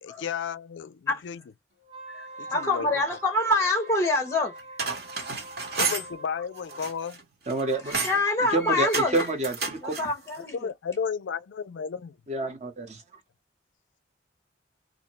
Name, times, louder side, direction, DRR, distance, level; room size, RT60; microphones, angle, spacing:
voice 1, 0.0-1.4 2.4-2.9 5.8-7.2 10.3-12.2, left 6 dB, 70° left, 0.3 m, -33 dB
Wind instrument woodwind instrument, 1.8-7.1, right 2 dB, 90° right, 1.3 m, -43 dB
voice 2, 2.1-4.5 7.7-9.3 9.8-10.6, left 2 dB, 15° left, 0.6 m, -26 dB
sound 1, 4.6-6.1 6.6-7.2 7.5-8.2 8.8-10.1, right 4 dB, 50° right, 1.1 m, -31 dB
voice 3, 7.5-8.0 8.5-10.0 12.3-13.0, right 2 dB, 35° right, 0.8 m, -28 dB
2.6 x 2.1 x 2.9 m
head